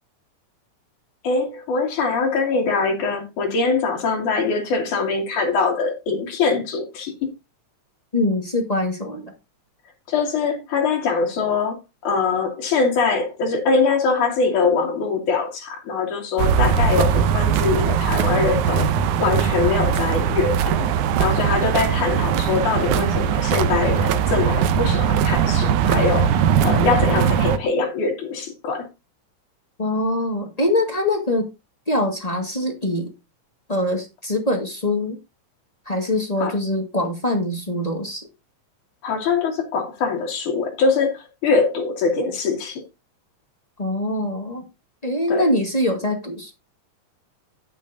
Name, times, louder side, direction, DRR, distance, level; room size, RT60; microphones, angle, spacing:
voice 1, 1.2-7.1 10.1-18.9 19.2-20.9 21.2-28.9 36.4-36.5 39.0-42.8 45.3-45.5, left 4 dB, 85° left, 3.8 m, -23 dB
voice 2, 8.1-9.3 29.8-31.5 31.9-33.1 33.7-35.2 35.8-38.3 43.8-44.6 45.0-46.5, left 1 dB, 20° left, 1.2 m, -23 dB
sound 1, 16.4-27.6, right 8 dB, 90° right, 2.3 m, -20 dB
17.0 x 6.0 x 2.6 m
omnidirectional pair, 3.4 m